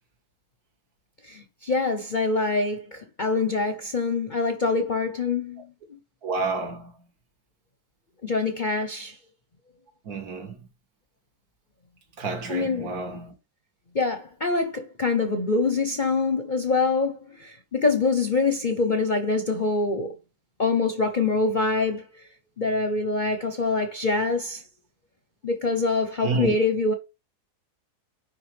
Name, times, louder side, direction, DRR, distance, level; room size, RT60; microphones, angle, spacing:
voice 1, 1.2-5.7 8.2-9.2 12.5-13.0 13.9-20.2 20.6-22.2 22.6-24.6 25.4-26.9, left 3 dB, 40° left, 0.7 m, -25 dB
voice 2, 6.2-6.9 10.1-10.6 12.2-13.3 26.2-26.5, right 4 dB, 65° right, 2.1 m, -29 dB
10.0 x 3.7 x 3.4 m
omnidirectional pair, 1.7 m